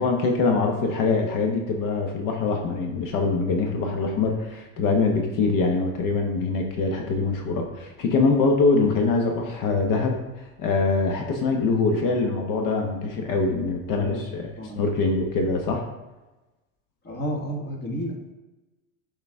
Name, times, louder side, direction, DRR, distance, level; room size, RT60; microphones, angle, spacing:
voice 1, 0.0-14.5 14.7-15.8, left 3 dB, 50° left, 2 dB, 1.1 m, -23 dB
voice 2, 13.9-14.2 14.6-14.8 17.0-18.3, equal, 25° left, 1 dB, 1.5 m, -31 dB
6.8 x 4.1 x 3.5 m, 1.1 s
supercardioid pair, 110°, 41 cm